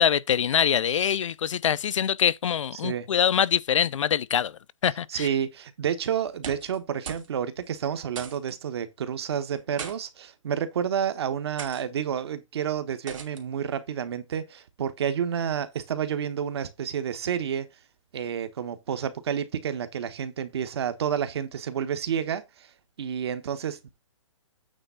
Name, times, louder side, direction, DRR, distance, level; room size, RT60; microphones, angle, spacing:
voice 1, 0.0-4.5 4.8-5.3, left 9 dB, 70° left, 0.5 m, -24 dB
voice 2, 2.7-3.1 5.1-17.7 18.1-22.7 23.0-23.8, right 8 dB, 55° right, 1.2 m, -30 dB
sound 1, 6.3-6.8 7.0-7.3 7.6-7.7 8.2-8.5 9.5-10.0 10.7-11.0 11.6-11.8 13.1-13.4, right 6 dB, 75° right, 2.6 m, -39 dB
8.9 x 3.5 x 5.6 m
hypercardioid pair, 165°, 17 cm